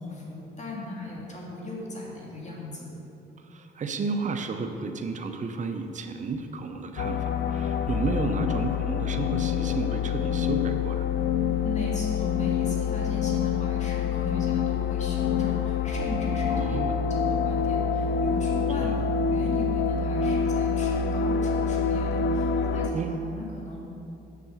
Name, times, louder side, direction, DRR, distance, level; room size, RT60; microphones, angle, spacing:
voice 1, 0.0-2.9 11.6-16.8 17.1-23.0 23.3-23.9, left 2 dB, 35° left, -3 dB, 2.2 m, -37 dB
voice 2, 3.4-11.1 16.5-17.0 18.8-19.0 22.9-23.2, right 4 dB, 40° right, 6 dB, 0.7 m, -32 dB
sound 1, 7.0-22.9, left 6 dB, 65° left, 0.5 m, -26 dB
7.4 x 6.7 x 6.5 m, 2.8 s
cardioid pair, 90°, 20 cm